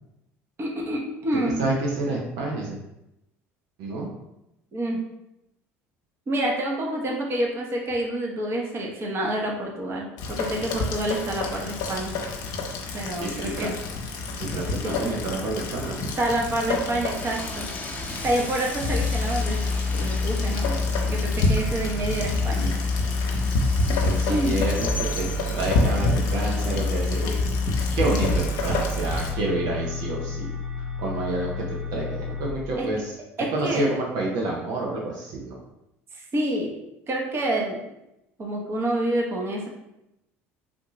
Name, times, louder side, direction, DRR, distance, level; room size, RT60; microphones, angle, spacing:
voice 1, 0.6-1.6 4.7-5.0 6.3-12.1 12.9-13.7 14.8-15.1 16.2-17.7 18.2-19.6 19.9-20.8 21.0-22.7 23.9-24.0 24.3-24.6 32.8-32.9 33.4-33.9 36.1-36.8 37.1-37.8 38.4-39.7, right 1 dB, 35° right, -1 dB, 0.9 m, -28 dB
voice 2, 1.6-2.8 3.8-4.1 13.2-13.7 14.4-16.1 23.9-25.3 25.5-27.3 27.9-30.6 31.0-33.2 33.5-35.6, right 2 dB, 65° right, -2 dB, 0.7 m, -29 dB
Rain, 10.2-29.3, left 3 dB, 65° left, 0.7 m, -29 dB
Train, 17.1-27.5, left 3 dB, 20° left, 0.8 m, -40 dB
sound 1, 18.8-32.5, left 3 dB, 5° right, 1.0 m, -27 dB
3.6 x 2.4 x 3.0 m, 0.87 s
hypercardioid pair, 75°, 7 cm